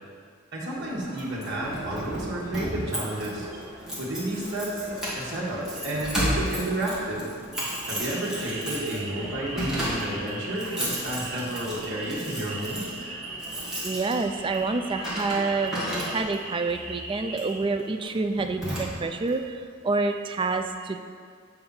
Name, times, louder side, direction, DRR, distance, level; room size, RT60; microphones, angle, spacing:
voice 1, 0.5-3.5 3.7-7.4 7.8-13.0, right 1 dB, 60° right, -6 dB, 1.6 m, -31 dB
sound 1, 0.7-16.1, equal, 15° left, 1.0 m, -47 dB
Keys jangling, 1.2-16.5 17.3-17.6 18.0-18.1 18.4-19.3, equal, 5° right, 1.6 m, -34 dB
sound 2, 7.5-17.6, right 3 dB, 90° right, 1.1 m, -39 dB
voice 2, 13.8-21.0, right 3 dB, 25° right, 6 dB, 0.3 m, -28 dB
7.9 x 3.4 x 5.4 m, 2.1 s
head